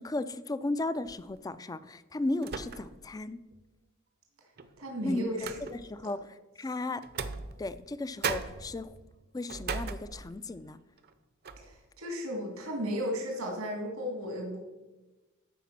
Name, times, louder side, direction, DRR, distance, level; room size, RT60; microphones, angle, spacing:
voice 1, 0.0-3.4 5.0-5.2 5.7-7.0 7.6-9.0 9.3-10.8, left 2 dB, 15° left, 14 dB, 0.4 m, -35 dB
sound 1, 1.1-1.4 2.4-3.1 3.5-3.6 4.6-6.0 7.0-7.9 8.2-10.6 11.0-11.1 11.4-11.8, right 5 dB, 50° right, 0.7 m, -38 dB
voice 2, 4.8-5.6 6.0-6.1 11.6-14.6, equal, 90° right, 1 dB, 2.2 m, -35 dB
13.0 x 5.0 x 5.9 m, 1.1 s
head